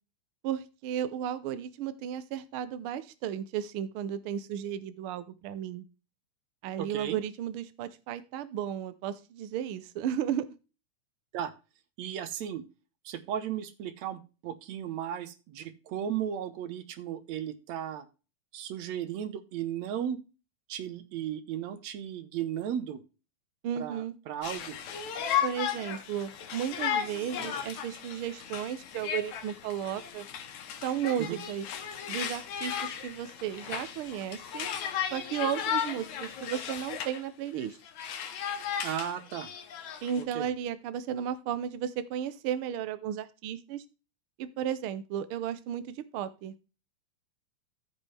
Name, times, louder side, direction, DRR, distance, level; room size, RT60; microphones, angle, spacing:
voice 1, 0.4-5.8 6.6-10.5 23.6-24.1 25.4-30.3 30.8-31.7 32.1-34.7 35.1-37.8 40.0-43.8 44.4-46.5, right 9 dB, 85° right, 13 dB, 1.1 m, -34 dB
voice 2, 6.8-7.2 11.3-11.5 12.0-12.6 13.1-18.1 18.5-20.2 20.7-23.0 23.8-24.8 31.2-31.4 38.8-39.5 40.2-40.5, right 10 dB, 70° right, 11 dB, 2.1 m, -35 dB
Conversation, 24.4-37.2 37.6-40.2, left 9 dB, 70° left, 2.4 m, -35 dB
14.5 x 5.3 x 3.3 m, 0.31 s
omnidirectional pair, 3.4 m